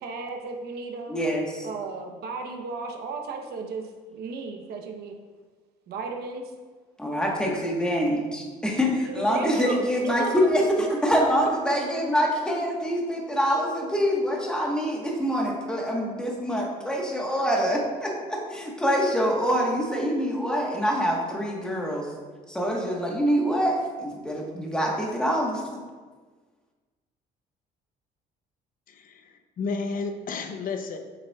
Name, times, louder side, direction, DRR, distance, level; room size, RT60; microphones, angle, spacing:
voice 1, 0.0-1.2 1.6-5.2 5.9-6.5 9.0-10.3 10.8-10.9 11.7-11.8, right 4 dB, 70° right, 3 dB, 0.9 m, -35 dB
voice 2, 1.1-1.7 7.0-22.1 22.5-25.6, equal, 5° left, -2 dB, 1.3 m, -25 dB
voice 3, 28.9-31.0, left 4 dB, 55° left, 6 dB, 0.7 m, -32 dB
7.4 x 6.0 x 2.4 m, 1.4 s
cardioid pair, 110°, 17 cm